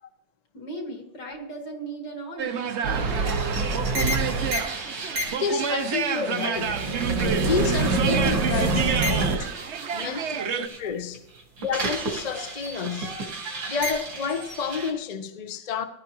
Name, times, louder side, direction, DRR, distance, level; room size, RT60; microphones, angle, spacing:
voice 1, 0.5-3.5 10.2-10.3 10.9-11.0, right 2 dB, 65° left, 3.1 m, -38 dB
sound 1, 2.4-10.7, right 7 dB, 55° right, 0.8 m, -30 dB
sound 2, 2.8-10.8 11.1-14.9, right 3 dB, 85° right, 2.8 m, -28 dB
voice 2, 5.4-6.8 7.4-9.5 9.9-11.2 11.6-15.9, left 6 dB, 45° left, 0.5 m, -30 dB
18.5 x 12.0 x 3.0 m
omnidirectional pair, 2.0 m